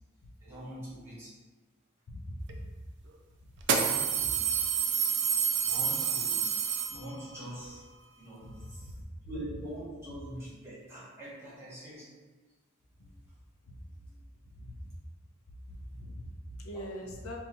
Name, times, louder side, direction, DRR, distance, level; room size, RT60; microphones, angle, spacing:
voice 1, 0.4-1.3 3.6-4.4 5.2-5.4 5.7-6.5 6.8-7.8 8.2-9.0 9.3-12.1 14.1-14.2 16.7-16.8, right 1 dB, 10° right, -9 dB, 1.0 m, -43 dB
voice 2, 2.1-2.7 3.4-3.5 4.1-4.2 8.4-8.7 13.0-13.1 13.7-13.8 14.5-14.8 15.7-17.4, equal, 80° left, 0 dB, 0.5 m, -42 dB
sound 1, 2.5-2.6 3.6-7.4, right 7 dB, 55° right, 0.3 m, -29 dB
2.7 x 2.3 x 4.1 m, 1.3 s
head